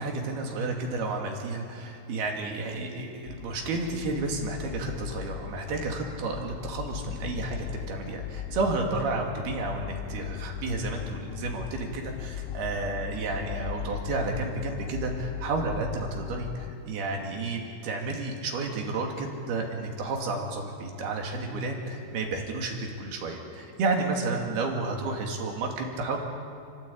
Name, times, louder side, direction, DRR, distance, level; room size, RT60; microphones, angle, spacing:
voice 1, 0.0-26.2, right 3 dB, 85° right, 1 dB, 4.3 m, -31 dB
sound 1, 3.3-16.7, left 10 dB, 75° left, 1.8 m, -38 dB
26.5 x 16.5 x 8.6 m, 2.5 s
omnidirectional pair, 4.3 m